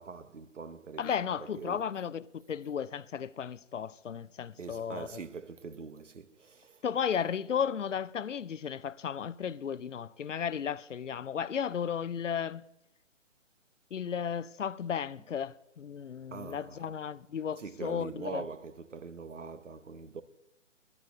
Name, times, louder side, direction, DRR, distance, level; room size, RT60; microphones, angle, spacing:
voice 1, 0.0-1.9 4.6-6.8 16.3-17.0 17.6-20.2, right 5 dB, 65° right, 1.1 m, -43 dB
voice 2, 1.0-5.1 6.8-12.6 13.9-18.4, left 7 dB, 70° left, 0.6 m, -34 dB
11.0 x 10.0 x 8.3 m
figure-of-eight pair, 145°, 39 cm